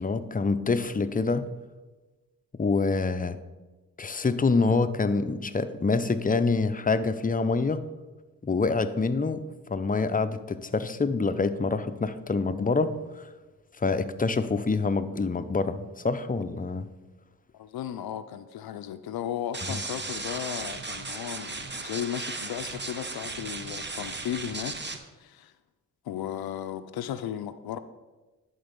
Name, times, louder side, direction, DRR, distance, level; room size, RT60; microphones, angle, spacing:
voice 1, 0.0-1.5 2.6-3.4 4.0-7.9 8.4-9.4 9.7-13.3 13.8-16.9 19.7-19.8, left 4 dB, 25° left, 0.6 m, -26 dB
voice 2, 17.5-24.8 25.2-25.5 26.0-27.8, left 10 dB, 85° left, 0.5 m, -35 dB
sound 1, 19.5-25.0, right 3 dB, 30° right, 0.9 m, -36 dB
10.5 x 4.0 x 5.2 m
cardioid pair, 50°, 36 cm